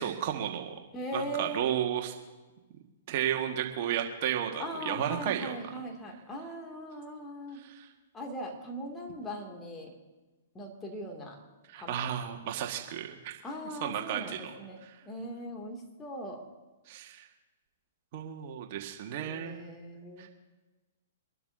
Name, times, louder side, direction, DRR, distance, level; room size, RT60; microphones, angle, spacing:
voice 1, 0.0-0.8 1.1-2.1 3.1-5.6 7.5-7.9 11.7-13.4 13.8-14.4 14.8-15.0 16.9-17.3 18.1-19.6 20.2-20.3, right 10 dB, 45° right, 2 dB, 1.7 m, -33 dB
voice 2, 0.9-1.6 4.6-7.6 8.1-9.9 10.5-11.4 11.8-12.1 13.4-16.4 19.1-20.3, equal, 15° left, 1 dB, 2.5 m, -40 dB
25.0 x 12.0 x 2.8 m, 1.2 s
figure-of-eight pair, 115°, 0 cm